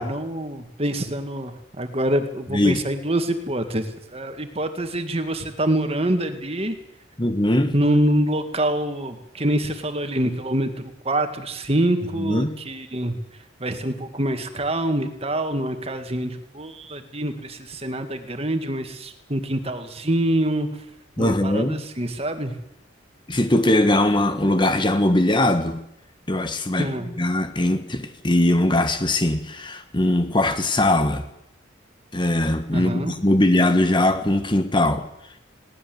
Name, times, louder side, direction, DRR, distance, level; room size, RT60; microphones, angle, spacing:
voice 1, 0.0-3.9 4.1-6.8 7.7-13.2 13.6-20.7 21.2-22.6 26.8-27.1 32.7-33.2, right 1 dB, 30° right, 2.2 m, -25 dB
voice 2, 7.2-7.7 12.2-12.5 21.2-21.8 23.3-25.8 26.3-31.2 32.1-35.1, left 1 dB, 25° left, 1.5 m, -21 dB
21.5 x 18.5 x 8.0 m
head